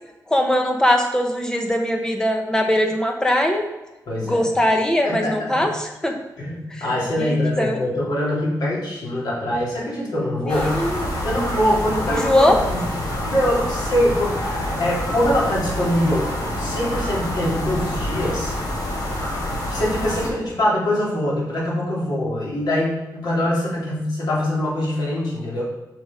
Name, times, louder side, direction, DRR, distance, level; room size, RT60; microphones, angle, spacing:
voice 1, 0.3-3.6 4.2-6.2 6.7-6.9 7.2-7.8 10.5-11.1 12.1-12.6, left 1 dB, 10° left, 3 dB, 1.0 m, -21 dB
voice 2, 4.1-4.5 5.0-5.7 6.4-10.8 11.2-16.3 16.6-18.5 19.7-25.6, left 1 dB, 85° left, -5 dB, 2.9 m, -23 dB
sound 1, 10.5-20.3, left 1 dB, 65° left, 1.9 m, -27 dB
8.5 x 6.1 x 3.7 m, 1.1 s
wide cardioid pair, 175°, 7 cm